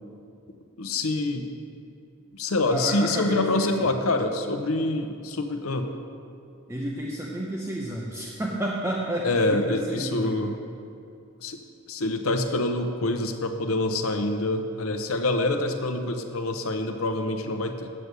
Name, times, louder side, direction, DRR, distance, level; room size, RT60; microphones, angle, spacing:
voice 1, 0.8-1.5 2.3-5.9 9.2-10.6 11.4-11.6 11.9-17.9, left 2 dB, 75° left, 6 dB, 0.8 m, -26 dB
voice 2, 2.7-3.9 6.7-10.4, right 1 dB, 15° right, -3 dB, 0.7 m, -31 dB
8.0 x 7.6 x 6.7 m, 2.6 s
head